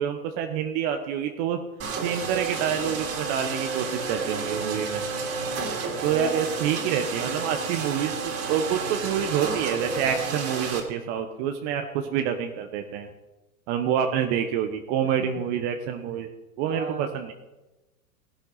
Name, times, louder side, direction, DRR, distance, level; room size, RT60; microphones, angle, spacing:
voice 1, 0.0-1.6 1.9-5.0 6.0-13.1 13.7-16.3 16.6-17.3, right 8 dB, 50° right, 6 dB, 1.3 m, -27 dB
sound 1, 1.8-10.8, right 4 dB, 35° right, 3.1 m, -31 dB
voice 2, 5.5-6.2 15.0-15.4 16.7-17.1, right 3 dB, 15° right, 4 dB, 2.0 m, -42 dB
15.5 x 11.5 x 4.2 m, 1.1 s
hypercardioid pair, 105°, 43 cm